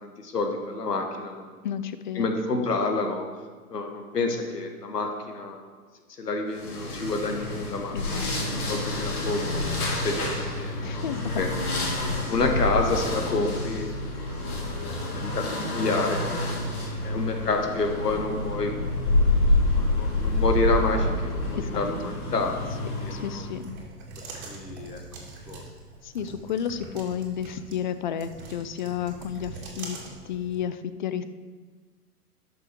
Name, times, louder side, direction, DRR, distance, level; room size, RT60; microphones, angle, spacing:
voice 1, 0.0-1.5 2.1-3.2 3.7-5.6 6.2-11.5 12.3-13.9 14.8-16.3 17.0-18.7 19.7-23.4 24.5-25.0 25.5-25.6, left 3 dB, 85° left, 4 dB, 1.5 m, -29 dB
voice 2, 1.6-2.4 7.9-8.6 10.8-11.4 21.5-22.1 23.1-23.8 26.0-30.0 30.3-31.2, left 8 dB, 35° left, 12 dB, 0.4 m, -32 dB
sound 1, 6.5-23.7, left 2 dB, 65° left, 3.0 m, -28 dB
sound 2, 23.5-30.6, right 3 dB, 45° right, 2.5 m, -43 dB
12.0 x 6.2 x 4.6 m, 1.5 s
hypercardioid pair, 125°, 47 cm